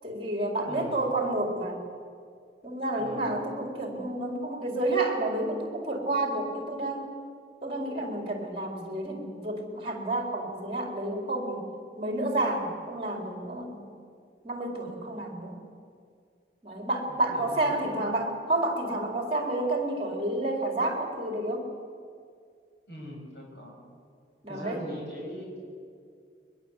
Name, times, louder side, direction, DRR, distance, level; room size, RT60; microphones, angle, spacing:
voice 1, 0.0-1.8 2.6-7.1 7.6-11.7 12.0-13.8 14.4-15.6 16.6-21.7 24.4-24.8, right 2 dB, 30° right, 2 dB, 4.4 m, -30 dB
voice 2, 0.7-1.1 3.0-3.4 17.1-17.8 22.9-23.8 24.5-25.6, left 1 dB, 70° left, -1 dB, 7.5 m, -42 dB
23.0 x 21.5 x 8.4 m, 2.2 s
head